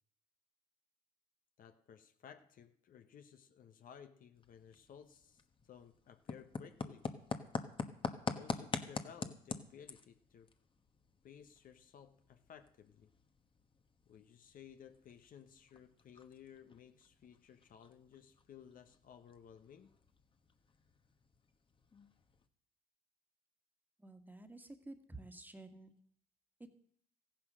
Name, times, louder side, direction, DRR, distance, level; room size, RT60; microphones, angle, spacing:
voice 1, 1.6-7.1 8.2-10.5 11.2-13.1 14.1-20.0, left 8 dB, 55° left, 8 dB, 1.0 m, -57 dB
sound 1, 4.3-22.5, left 4 dB, 30° left, 1.2 m, -47 dB
voice 2, 24.0-25.9, right 2 dB, 10° right, 7 dB, 1.8 m, -51 dB
14.5 x 10.5 x 6.3 m, 0.67 s
supercardioid pair, 85°, 17 cm